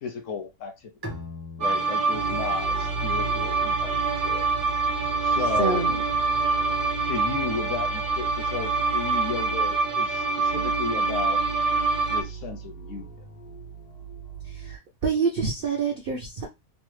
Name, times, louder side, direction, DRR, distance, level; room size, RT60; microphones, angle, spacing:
voice 1, 0.0-1.1 1.6-4.5 5.2-5.9 7.1-11.4 12.1-13.2, left 6 dB, 65° left, 0.8 m, -34 dB
Bowed string instrument, 1.0-4.5, left 2 dB, 25° right, 0.6 m, -42 dB
sound 1, 1.6-12.2, right 4 dB, 55° right, 0.9 m, -25 dB
sound 2, 2.1-14.8, right 3 dB, 90° left, 1.4 m, -37 dB
voice 2, 5.6-5.9 14.5-16.5, right 5 dB, 80° right, 0.4 m, -27 dB
3.0 x 2.0 x 3.1 m
omnidirectional pair, 1.6 m